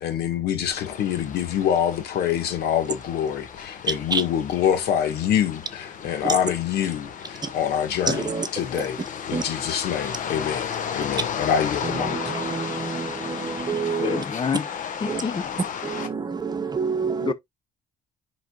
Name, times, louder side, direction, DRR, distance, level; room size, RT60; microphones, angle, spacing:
voice 1, 0.0-9.0 9.3-12.4, left 9 dB, 75° left, 1.8 m, -25 dB
sound 1, 0.7-16.1, left 7 dB, 50° left, 1.5 m, -34 dB
voice 2, 8.1-8.5 9.3-9.4 12.1-14.2 15.1-15.2 15.8-17.3, right 5 dB, 25° right, 1.0 m, -27 dB
voice 3, 14.0-14.7 15.0-15.5 17.2-17.3, left 5 dB, 30° left, 0.9 m, -27 dB
10.0 x 4.0 x 2.5 m
cardioid pair, 110°, 17 cm